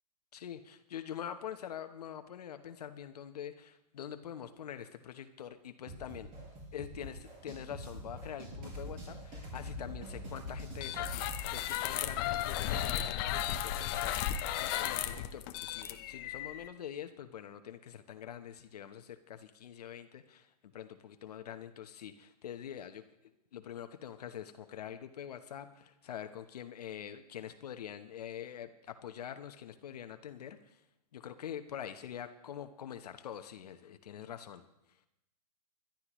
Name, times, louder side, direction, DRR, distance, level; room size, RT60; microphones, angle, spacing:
voice 1, 0.3-6.3 6.7-23.1 23.5-30.8 31.1-34.6, left 9 dB, 70° left, 9 dB, 1.0 m, -45 dB
sound 1, 5.9-11.5, equal, 35° right, 6.6 m, -44 dB
sound 2, 10.8-16.7, left 11 dB, 35° left, 0.8 m, -35 dB
21.5 x 12.0 x 3.1 m, 0.87 s
hypercardioid pair, 140°, 21 cm